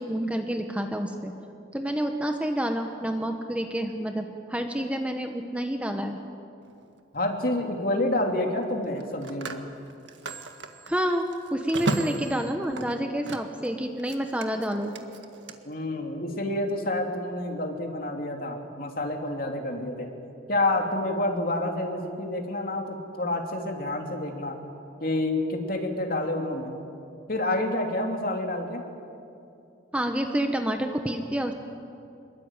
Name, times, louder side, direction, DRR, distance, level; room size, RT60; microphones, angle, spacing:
voice 1, 0.0-1.3 1.7-6.2 10.9-14.9 29.9-31.5, right 1 dB, 5° right, 4 dB, 1.2 m, -28 dB
Telephone, 6.6-6.9 8.8-13.7 14.0-15.5, right 2 dB, 70° right, 1.8 m, -35 dB
voice 2, 7.1-9.6 15.6-20.1 20.5-24.6 25.0-26.8 27.3-28.8, left 1 dB, 50° left, 2 dB, 3.1 m, -28 dB
25.5 x 22.5 x 9.1 m, 2.6 s
head